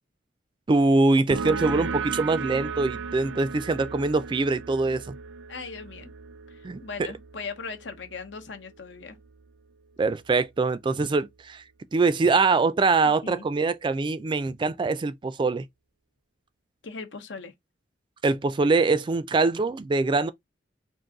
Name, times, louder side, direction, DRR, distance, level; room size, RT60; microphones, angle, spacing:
voice 1, 0.7-5.1 6.6-6.8 10.0-11.6 11.9-15.7 18.2-20.3, right 3 dB, 25° right, 0.3 m, -23 dB
sound 1, 1.3-8.6, right 5 dB, 85° right, 0.5 m, -35 dB
voice 2, 5.5-6.1 6.5-9.2 13.0-13.5 16.8-17.5, left 4 dB, 85° left, 0.9 m, -39 dB
3.8 x 2.6 x 3.7 m
head